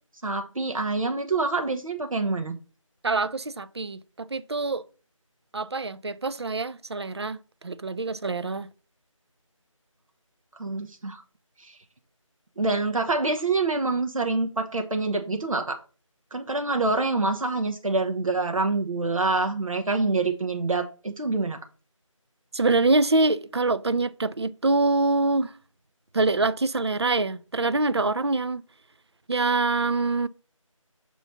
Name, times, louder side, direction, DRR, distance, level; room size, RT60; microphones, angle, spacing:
voice 1, 0.2-2.6 10.6-11.2 11.6-11.8 12.6-15.8 16.3-21.6, right 3 dB, 75° right, 1.0 m, -26 dB
voice 2, 3.0-4.8 5.5-7.4 7.6-8.7 22.5-25.5 26.1-28.6 29.3-30.3, right 3 dB, 50° right, 0.4 m, -25 dB
6.8 x 3.0 x 5.6 m
figure-of-eight pair, 170°, 17 cm